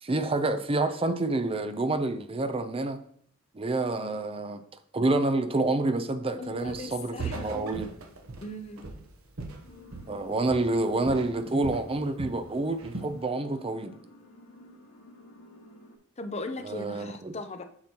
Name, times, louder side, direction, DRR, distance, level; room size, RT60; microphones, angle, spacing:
voice 1, 0.0-3.0 3.5-4.6 4.9-7.9 10.1-14.0 16.6-17.3, right 2 dB, 25° right, 0.5 m, -28 dB
voice 2, 4.0-4.3 6.4-7.8 8.4-8.9 16.2-17.6, left 2 dB, 30° left, 0.6 m, -39 dB
Walk footsteps, 6.7-6.9 7.2-10.2 10.5-10.8 11.1-12.4 12.8-13.2, right 3 dB, 75° right, 1.0 m, -39 dB
sound 1, 9.6-16.0, left 1 dB, 65° left, 1.9 m, -52 dB
8.5 x 6.1 x 2.9 m
head